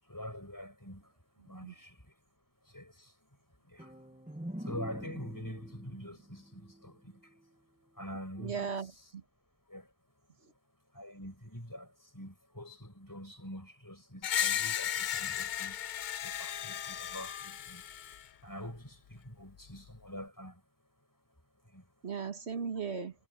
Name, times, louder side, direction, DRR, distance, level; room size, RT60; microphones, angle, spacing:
voice 1, 0.0-2.3 2.6-4.1 4.6-7.4 7.9-9.1 9.6-9.9 10.9-15.8 16.2-18.1 18.4-20.6 21.0-21.1 21.6-21.9, equal, 15° left, 6.6 m, -46 dB
sound 1, 3.8-7.5, right 1 dB, 5° right, 1.5 m, -45 dB
voice 2, 8.4-9.2 22.0-23.1, right 6 dB, 70° right, 2.1 m, -37 dB
Screech, 14.2-18.2, left 9 dB, 55° left, 0.6 m, -35 dB
omnidirectional pair, 1.2 m